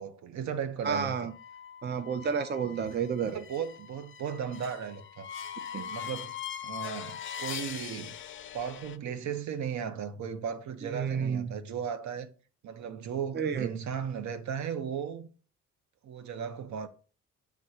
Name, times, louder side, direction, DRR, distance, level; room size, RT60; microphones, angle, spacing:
voice 1, 0.0-1.3 3.3-5.3 5.9-6.4 6.6-8.2 8.5-12.3 12.6-15.3 16.0-16.9, right 7 dB, 70° right, 0.9 m, -36 dB
voice 2, 0.8-1.3 1.8-3.4 5.7-5.9 10.8-11.5 13.3-13.7, right 6 dB, 35° right, 0.7 m, -31 dB
sound 1, 1.3-9.0, left 9 dB, 40° left, 0.5 m, -41 dB
6.5 x 3.7 x 5.6 m
cardioid pair, 90°, 30 cm